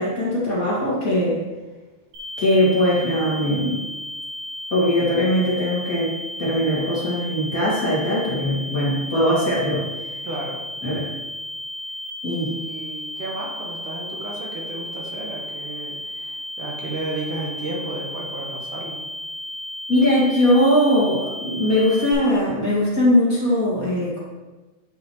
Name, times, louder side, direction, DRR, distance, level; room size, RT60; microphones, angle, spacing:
voice 1, 0.0-1.4 2.4-3.8 4.7-6.1 6.4-9.9 10.8-11.1 12.2-12.6 19.9-24.2, left 1 dB, 30° left, -7 dB, 1.7 m, -20 dB
sound 1, 2.1-22.1, left 1 dB, 45° right, 3.6 m, -34 dB
voice 2, 10.2-10.6 12.2-19.0, right 2 dB, 65° right, -2 dB, 2.4 m, -33 dB
10.5 x 6.2 x 3.0 m, 1.2 s
omnidirectional pair, 4.2 m